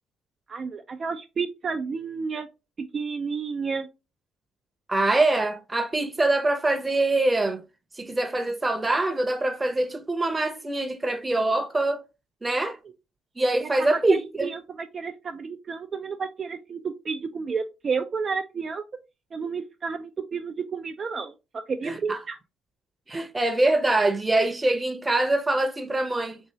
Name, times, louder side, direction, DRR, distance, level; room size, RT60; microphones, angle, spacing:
voice 1, 0.5-2.5 2.9-3.9 13.6-18.8 19.3-21.3 21.7-22.4, right 5 dB, 45° right, 0.4 m, -31 dB
voice 2, 4.9-7.6 8.0-12.0 12.4-12.8 13.4-14.5 21.8-22.2 23.1-26.4, right 2 dB, 20° right, 0.7 m, -24 dB
3.0 x 2.8 x 2.9 m
hypercardioid pair, 60°, 0 cm